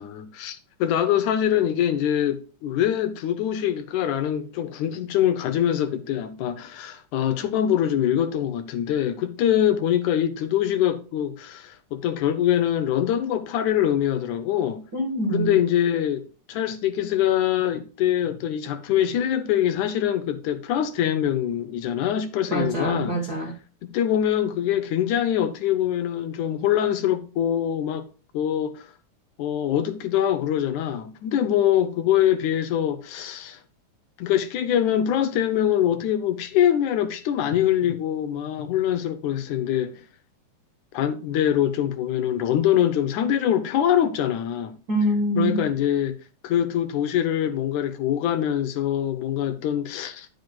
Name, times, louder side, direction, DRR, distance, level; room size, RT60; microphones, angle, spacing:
voice 1, 0.0-14.8 15.3-23.2 23.8-28.0 28.3-28.9 29.4-33.6 34.2-40.0 40.9-44.7 45.4-46.2 46.4-50.3, left 10 dB, 75° left, 2.0 m, -24 dB
voice 2, 14.9-15.5 22.5-23.5 44.9-45.6, right 1 dB, 50° right, 1.2 m, -25 dB
10.5 x 7.7 x 2.3 m
omnidirectional pair, 3.7 m